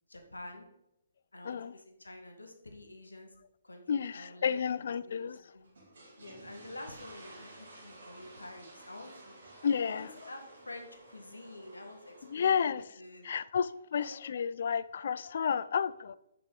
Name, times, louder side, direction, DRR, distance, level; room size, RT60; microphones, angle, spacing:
voice 1, 0.1-0.7 1.3-3.4 3.6-5.7 6.2-9.4 9.9-13.2 14.0-14.2, left 2 dB, 80° left, 1.5 m, -48 dB
voice 2, 3.9-5.4 9.6-10.1 12.3-12.8 13.2-16.1, left 7 dB, 55° left, 0.3 m, -31 dB
sound 1, 5.6-12.7, right 2 dB, 60° right, 2.2 m, -53 dB
7.3 x 6.0 x 3.8 m
figure-of-eight pair, 130°, 0 cm